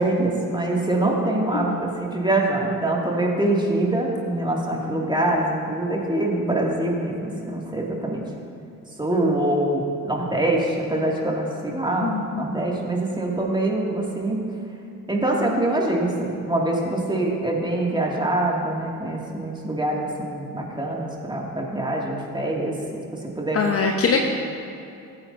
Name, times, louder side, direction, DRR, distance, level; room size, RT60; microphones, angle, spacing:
voice 1, 0.0-8.2 9.0-14.5 15.1-22.8 23.1-23.7 24.1-24.2, right 1 dB, 10° right, -2 dB, 2.4 m, -24 dB
voice 2, 12.0-12.4 23.5-24.2, left 5 dB, 30° left, 2 dB, 1.0 m, -23 dB
18.5 x 9.0 x 2.8 m, 2.7 s
figure-of-eight pair, 50°, 45 cm